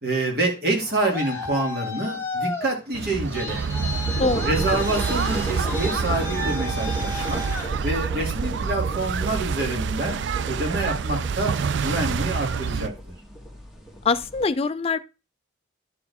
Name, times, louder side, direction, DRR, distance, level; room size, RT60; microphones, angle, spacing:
voice 1, 0.0-3.7 4.5-7.4 7.8-10.2 10.4-11.5 11.8-12.9, right 2 dB, 55° right, 2.4 m, -27 dB
Traffic noise roadway noise, 0.7-8.4, left 3 dB, 15° left, 1.3 m, -34 dB
sound 1, 2.9-12.9, right 6 dB, 70° right, 0.4 m, -27 dB
sound 2, 4.1-14.5, right 1 dB, ahead, 1.3 m, -37 dB
voice 2, 4.2-4.5 14.0-15.0, left 4 dB, 30° left, 0.4 m, -23 dB
10.5 x 4.4 x 4.2 m
head